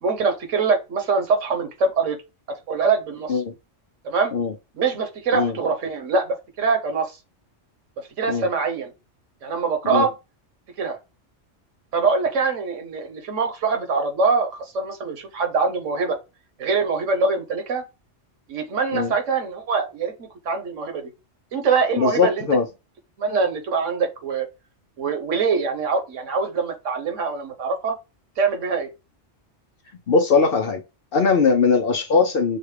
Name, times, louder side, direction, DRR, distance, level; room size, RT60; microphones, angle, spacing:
voice 1, 0.0-2.2 2.7-3.4 4.0-4.3 4.7-7.2 8.0-8.9 9.4-10.1 10.8-11.0 11.9-16.2 16.6-17.8 18.5-21.1 21.5-22.4 23.2-24.5 25.0-27.9 28.4-28.9, right 4 dB, 80° right, 1.3 m, -23 dB
voice 2, 22.0-22.7 30.1-30.8 31.1-32.6, left 5 dB, 55° left, 0.8 m, -20 dB
6.4 x 2.3 x 3.2 m
omnidirectional pair, 1.3 m